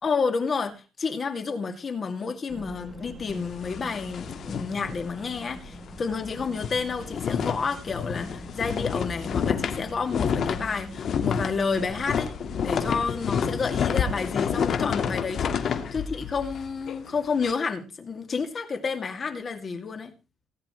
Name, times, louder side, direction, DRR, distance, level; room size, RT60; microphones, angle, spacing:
voice 1, 0.0-12.3 12.6-20.1, left 5 dB, 35° left, 2.5 m, -30 dB
sound 1, 2.5-15.8, left 1 dB, 5° right, 6.3 m, -44 dB
sound 2, 3.3-5.6 5.9-6.0 6.3-17.5, left 7 dB, 55° left, 1.8 m, -29 dB
19.0 x 10.0 x 3.2 m
cardioid pair, 130°, 0 cm